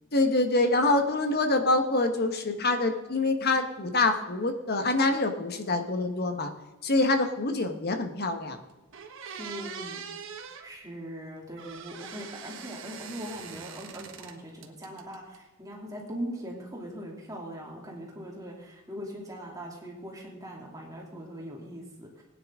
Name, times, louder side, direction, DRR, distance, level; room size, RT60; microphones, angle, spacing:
voice 1, 0.1-6.5 6.8-8.6, left 2 dB, 50° left, 6 dB, 1.3 m, -25 dB
sound 1, 8.4-8.5 8.9-10.7 11.6-14.3 14.6-15.4, right 6 dB, 65° right, 1.3 m, -42 dB
voice 2, 9.4-10.0 10.6-22.2, equal, 15° right, -2 dB, 2.8 m, -40 dB
19.0 x 9.8 x 3.7 m, 1.1 s
head